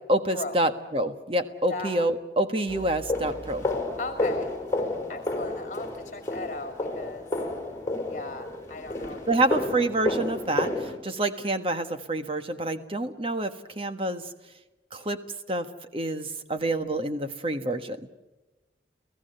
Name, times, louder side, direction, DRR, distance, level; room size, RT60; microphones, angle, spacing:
voice 1, 0.1-3.7 9.3-14.3 14.9-15.2 15.5-15.7 15.9-18.0, right 1 dB, 30° right, 8 dB, 1.4 m, -27 dB
sound 1, 2.7-11.0, left 2 dB, 15° left, 4.9 m, -31 dB
voice 2, 4.0-4.5 5.1-7.3 8.1-9.6, left 2 dB, 45° left, 6 dB, 2.3 m, -37 dB
30.0 x 17.0 x 6.8 m, 1.1 s
head